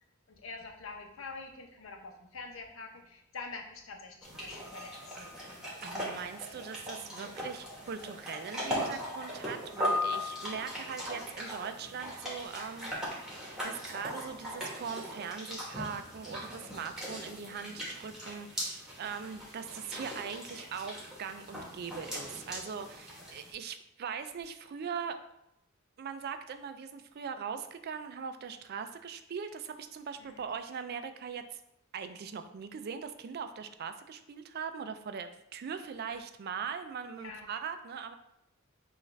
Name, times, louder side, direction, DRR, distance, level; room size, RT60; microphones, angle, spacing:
voice 1, 0.3-5.4 30.2-30.5 37.1-37.4, left 4 dB, 70° left, 3 dB, 0.7 m, -45 dB
sound 1, 4.2-23.5, left 1 dB, 5° right, 1.2 m, -39 dB
voice 2, 5.8-13.2 13.6-25.2 26.0-31.6 31.9-38.1, right 6 dB, 50° right, 9 dB, 0.3 m, -41 dB
6.3 x 2.4 x 3.2 m, 0.80 s
head